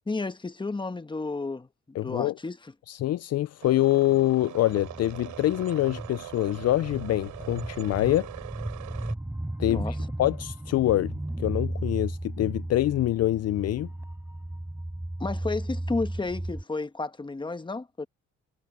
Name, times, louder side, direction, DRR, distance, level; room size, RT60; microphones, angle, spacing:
voice 1, 0.1-1.7 2.0-2.7 9.6-10.0 15.2-18.1, left 3 dB, 15° left, 1.2 m, -32 dB
voice 2, 2.0-2.3 2.9-8.3 9.6-9.8 10.2-13.9, left 14 dB, 55° left, 0.5 m, -25 dB
sound 1, 3.6-9.1, right 13 dB, 80° right, 4.8 m, -42 dB
sound 2, 4.7-16.6, right 1 dB, 10° right, 4.6 m, -35 dB
cardioid pair, 90°, 30 cm